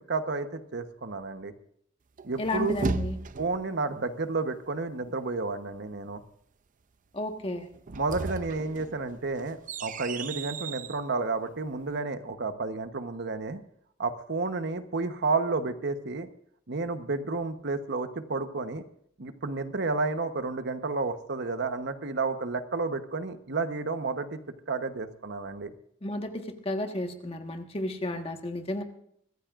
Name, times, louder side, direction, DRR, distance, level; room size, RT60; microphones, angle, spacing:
voice 1, 0.1-1.5 2.2-2.7 3.4-6.2 7.9-13.6 14.0-16.3 16.7-18.8 19.2-24.4 24.7-25.7, right 3 dB, 60° right, 8 dB, 1.1 m, -31 dB
sound 1, 2.2-3.7 7.7-11.0, right 4 dB, 40° right, 0.5 m, -35 dB
voice 2, 2.4-3.2 7.1-7.7 26.0-28.8, left 1 dB, 30° left, 4 dB, 1.5 m, -32 dB
24.0 x 15.0 x 2.5 m, 0.68 s
head